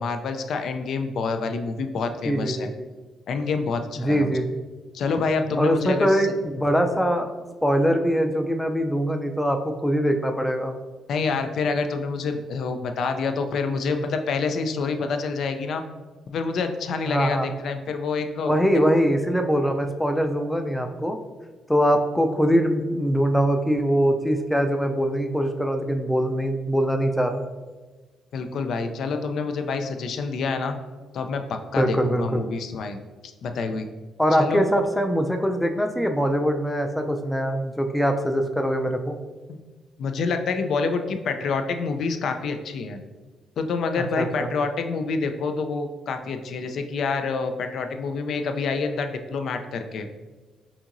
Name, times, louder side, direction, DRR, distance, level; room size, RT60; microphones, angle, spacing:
voice 1, 0.0-2.7 3.3-4.4 4.9-6.3 11.1-15.8 16.3-18.6 28.3-30.8 31.1-33.9 34.3-34.6 39.5-39.6 40.0-43.0 43.6-50.1, left 4 dB, 65° left, 7 dB, 0.4 m, -27 dB
voice 2, 2.2-2.9 4.0-4.6 5.6-7.3 7.6-10.8 17.1-17.5 18.5-21.2 21.7-27.5 31.8-32.4 34.2-39.2 44.2-44.5, equal, 5° left, 5 dB, 0.4 m, -22 dB
5.7 x 2.7 x 2.5 m, 1.3 s
cardioid pair, 90°, 0 cm